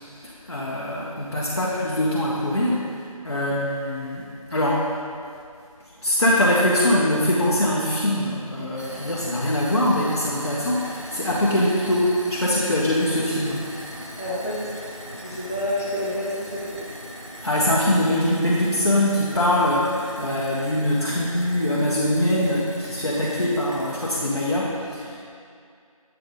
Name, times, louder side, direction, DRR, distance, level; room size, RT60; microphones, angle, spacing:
voice 1, 0.0-2.9 3.2-4.2 4.5-4.9 6.0-13.7 17.4-25.2, left 1 dB, 50° left, -6 dB, 0.8 m, -23 dB
sound 1, 8.8-24.3, equal, 55° right, 1.1 m, -40 dB
voice 2, 14.2-16.8, left 1 dB, 25° left, -9 dB, 1.1 m, -29 dB
7.7 x 3.4 x 3.6 m, 2.3 s
figure-of-eight pair, 170°, 19 cm